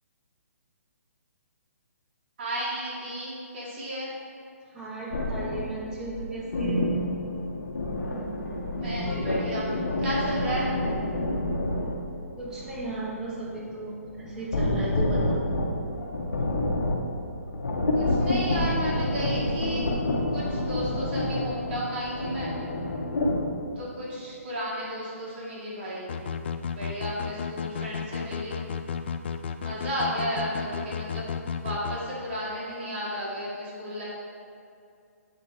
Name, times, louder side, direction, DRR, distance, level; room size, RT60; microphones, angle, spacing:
voice 1, 2.4-4.1 8.7-10.7 17.9-19.9 20.3-22.5 23.8-26.1 26.7-28.6 29.6-31.3 31.5-34.0, equal, 40° right, -6 dB, 1.8 m, -33 dB
voice 2, 4.7-6.9 12.4-15.4 16.5-16.6, right 2 dB, 5° right, -7 dB, 1.0 m, -35 dB
sound 1, 5.1-11.9 12.3-23.4, left 1 dB, 85° left, 1.3 m, -28 dB
sound 2, 26.1-32.0, left 6 dB, 45° left, 0.3 m, -33 dB
8.4 x 4.2 x 4.9 m, 2.5 s
hypercardioid pair, 165°, 8 cm